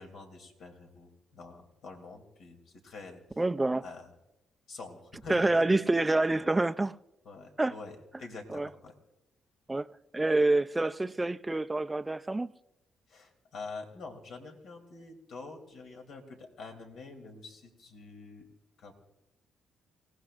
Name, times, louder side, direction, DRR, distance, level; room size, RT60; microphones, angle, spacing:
voice 1, 0.0-3.4 3.8-4.1 4.7-5.6 7.2-8.9 13.1-18.5 18.8-18.9, left 3 dB, 70° left, 2.9 m, -46 dB
voice 2, 3.4-3.8 5.3-7.0 7.6-7.7 8.5-8.7 9.7-9.9 10.1-12.5, right 2 dB, 15° right, 0.5 m, -27 dB
28.5 x 17.5 x 2.5 m
cardioid pair, 90°, 0 cm